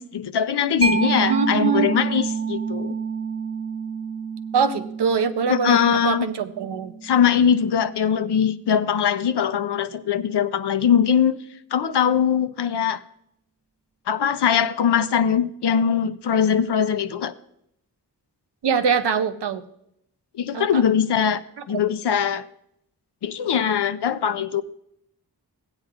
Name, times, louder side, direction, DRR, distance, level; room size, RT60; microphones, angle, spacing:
voice 1, 0.0-3.0 5.5-6.3 7.0-11.4 11.7-13.0 14.1-17.3 20.4-21.4 21.7-22.4 23.2-24.6, left 8 dB, 85° left, 11 dB, 0.6 m, -21 dB
Mallet percussion, 0.8-8.1, right 5 dB, 15° right, 1.1 m, -28 dB
voice 2, 1.1-1.9 4.5-6.9 18.6-19.6 20.5-20.8 21.7-21.8, right 6 dB, 80° right, 8 dB, 0.8 m, -23 dB
16.0 x 8.8 x 2.5 m, 0.76 s
wide cardioid pair, 65°, 40 cm